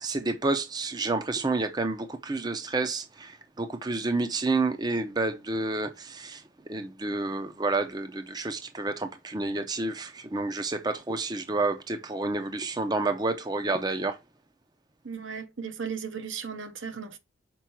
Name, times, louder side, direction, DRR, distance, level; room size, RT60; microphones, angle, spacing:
voice 1, 0.0-14.2, right 3 dB, 20° right, 0.5 m, -29 dB
voice 2, 15.0-17.2, right 6 dB, 75° right, 1.0 m, -36 dB
6.1 x 4.6 x 4.4 m
head